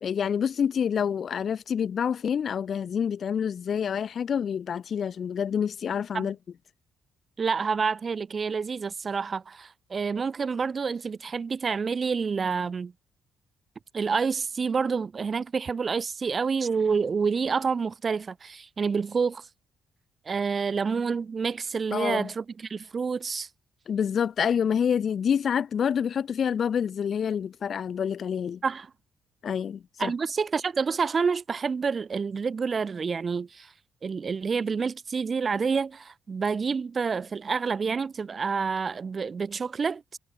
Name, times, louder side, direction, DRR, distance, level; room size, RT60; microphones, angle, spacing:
voice 1, 0.0-6.3 21.9-22.3 23.9-28.6 29.4-30.1, left 7 dB, 55° left, 1.4 m, -27 dB
voice 2, 7.4-12.9 13.9-19.5 20.3-23.5 28.6-28.9 30.0-33.7 34.0-40.0, right 5 dB, 40° right, 0.9 m, -28 dB
cardioid pair, 90°, 0 cm